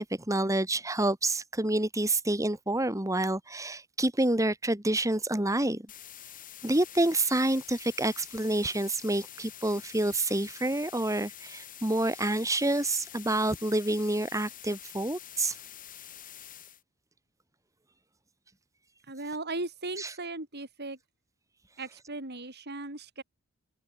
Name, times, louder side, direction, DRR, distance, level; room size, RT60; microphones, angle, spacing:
voice 1, 0.0-5.8 6.6-15.6 20.0-20.1, right 1 dB, 15° right, 2.0 m, -28 dB
sound 1, 5.9-16.8, left 11 dB, 40° left, 5.8 m, -47 dB
voice 2, 19.1-21.0 21.8-23.2, right 2 dB, 50° right, 5.2 m, -37 dB
head